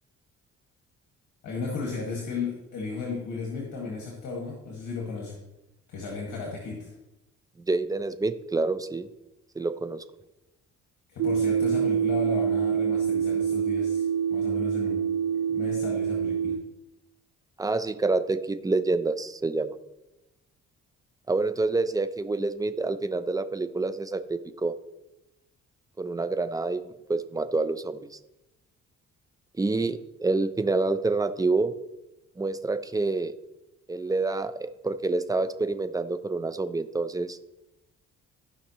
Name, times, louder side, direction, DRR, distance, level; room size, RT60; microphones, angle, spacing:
voice 1, 1.4-5.4 5.9-6.9 11.1-14.1 14.3-15.0 15.5-16.5, left 4 dB, 75° left, -2 dB, 2.0 m, -34 dB
voice 2, 7.7-9.1 9.6-10.0 17.6-19.8 21.3-24.7 26.0-26.8 27.1-28.1 29.6-31.7 32.4-33.3 33.9-37.4, right 3 dB, 10° right, 11 dB, 0.6 m, -27 dB
sound 1, 11.2-16.6, right 7 dB, 65° right, 0.6 m, -26 dB
15.0 x 5.7 x 3.1 m, 0.95 s
cardioid pair, 90°, 30 cm